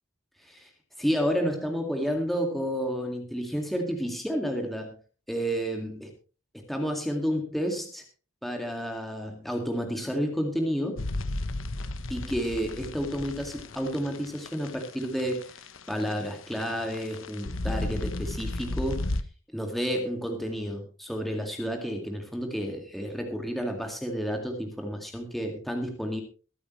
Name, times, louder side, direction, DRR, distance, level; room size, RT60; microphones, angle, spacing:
voice 1, 1.0-5.0 5.3-6.1 6.5-8.0 8.4-11.1 12.1-19.1 19.5-26.2, equal, ahead, 2 dB, 2.1 m, -31 dB
sound 1, 11.0-19.2, left 2 dB, 80° left, 1.1 m, -34 dB
23.0 x 8.6 x 3.2 m, 0.36 s
head